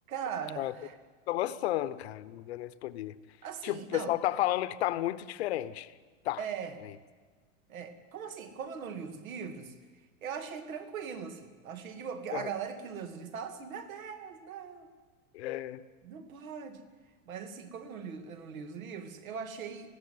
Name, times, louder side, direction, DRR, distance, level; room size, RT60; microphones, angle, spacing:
voice 1, 0.1-1.0 3.4-4.2 6.4-6.8 7.7-9.7 10.2-14.9 16.0-16.8 17.3-20.0, right 7 dB, 90° right, 2.5 m, -40 dB
voice 2, 1.3-3.2 3.6-5.9 6.2-6.4 12.3-12.5 15.3-15.8, left 14 dB, 50° left, 0.9 m, -32 dB
20.5 x 15.5 x 9.5 m
supercardioid pair, 175°, 40 cm